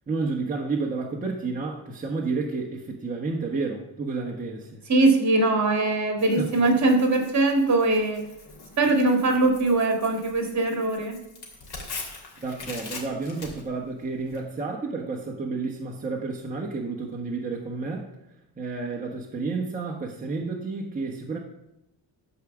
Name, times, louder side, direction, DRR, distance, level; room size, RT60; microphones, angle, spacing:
voice 1, 0.1-4.8 6.4-6.5 12.4-18.1 18.6-21.4, right 3 dB, 20° right, -2 dB, 1.1 m, -31 dB
voice 2, 4.9-8.2 8.8-11.2, right 2 dB, 40° right, 3 dB, 1.9 m, -21 dB
Tearing, 6.2-14.4, left 3 dB, 60° left, 2.8 m, -43 dB
12.5 x 4.9 x 7.1 m, 0.88 s
wide cardioid pair, 155°, 42 cm